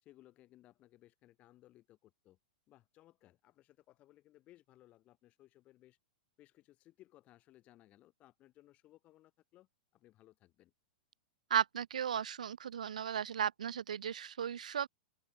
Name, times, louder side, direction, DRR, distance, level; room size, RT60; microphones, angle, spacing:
voice 1, 0.0-2.4 2.7-6.0 6.4-10.7, left 15 dB, 35° left, 2.3 m, -63 dB
voice 2, 11.5-14.9, right 8 dB, 85° right, 0.3 m, -35 dB
open air
hypercardioid pair, 120°, 4 cm